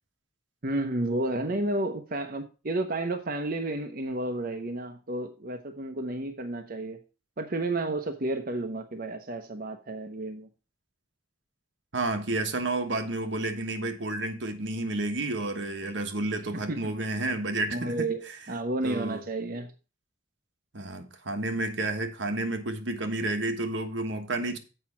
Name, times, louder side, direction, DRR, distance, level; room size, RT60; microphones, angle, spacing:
voice 1, 0.6-7.0 7.4-10.5 16.7-16.9 17.7-19.7, right 2 dB, 50° right, 0.9 m, -31 dB
voice 2, 11.9-18.1 18.8-19.2 20.7-24.6, right 2 dB, 80° right, 1.4 m, -30 dB
7.7 x 5.6 x 5.9 m
head